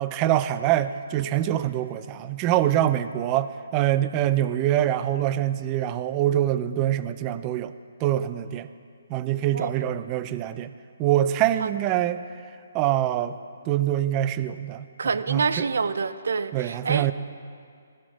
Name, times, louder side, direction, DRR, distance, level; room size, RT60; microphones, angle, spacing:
voice 1, 0.0-7.7 8.0-8.7 9.1-10.7 11.0-12.2 12.7-13.4 13.6-14.9 15.3-15.7 16.5-17.1, right 12 dB, 20° right, 13 dB, 0.4 m, -24 dB
voice 2, 15.0-17.1, right 5 dB, 75° right, 14 dB, 0.5 m, -27 dB
14.0 x 9.9 x 4.8 m, 2.2 s
hypercardioid pair, 160°, 0 cm